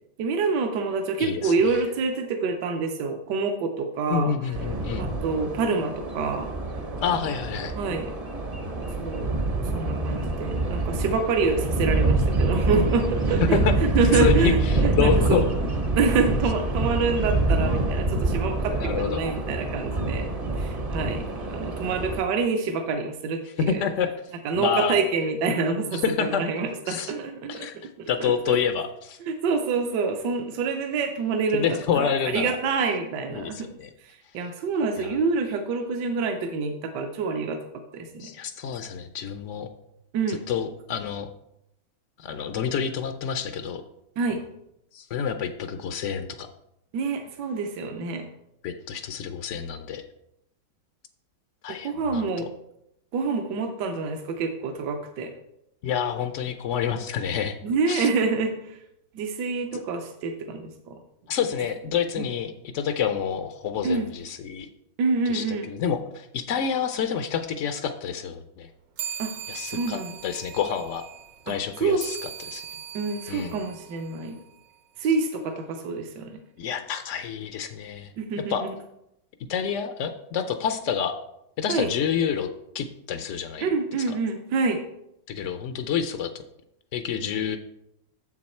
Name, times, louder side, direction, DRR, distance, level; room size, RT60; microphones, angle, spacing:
voice 1, 0.2-4.5 5.0-6.5 7.7-8.1 9.0-9.3 9.6-15.5 16.0-23.8 24.4-27.7 28.0-28.6 29.2-33.7 34.0-37.7 37.9-38.3 40.1-40.4 44.2-44.4 46.9-48.3 51.8-52.5 53.1-55.3 57.6-58.8 59.1-61.0 62.2-62.3 63.8-64.1 65.0-65.7 69.2-69.3 69.7-70.1 71.5-71.6 71.8-72.0 72.9-74.4 75.0-76.4 78.2-78.7 81.7-81.9 83.6-84.8, right 4 dB, 75° right, 5 dB, 1.3 m, -27 dB
voice 2, 1.2-1.5 4.1-5.0 7.0-7.7 13.5-13.7 14.1-15.4 18.7-19.2 23.6-24.1 24.5-25.0 25.9-26.4 26.9-27.1 27.5-27.7 28.1-29.2 31.5-32.6 33.3-33.9 35.0-35.2 38.2-39.7 40.3-41.3 42.2-43.8 44.9-46.5 48.6-50.0 51.6-52.3 55.8-57.6 57.9-58.1 59.7-59.8 61.3-64.7 65.3-68.7 69.5-71.0 71.5-72.1 72.5-72.6 73.3-73.6 76.6-78.1 78.5-78.6 79.5-81.1 81.6-82.5 82.7-83.7 84.1-84.2 85.3-86.4 86.9-87.6, left 7 dB, 80° left, 8 dB, 0.6 m, -28 dB
sound 1, 4.5-22.2, right 2 dB, 40° right, 0.5 m, -26 dB
sound 2, 69.0-74.8, right 9 dB, 60° right, 0.9 m, -40 dB
7.0 x 6.3 x 4.3 m, 0.80 s
omnidirectional pair, 1.9 m